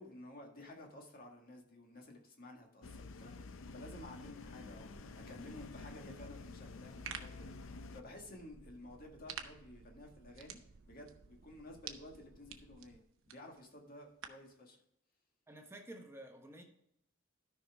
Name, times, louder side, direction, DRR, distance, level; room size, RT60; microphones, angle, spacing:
voice 1, 0.0-10.6 10.9-13.0 13.3-14.8, left 1 dB, 45° left, 1 dB, 1.9 m, -53 dB
sound 1, 2.8-8.0, left 3 dB, 65° left, 0.5 m, -50 dB
sound 2, 3.8-13.0, right 3 dB, 50° right, 0.5 m, -62 dB
sound 3, 6.7-14.5, right 7 dB, 65° right, 0.9 m, -52 dB
voice 2, 15.5-16.6, right 1 dB, 10° right, 3 dB, 1.1 m, -51 dB
13.0 x 5.7 x 3.5 m, 0.75 s
head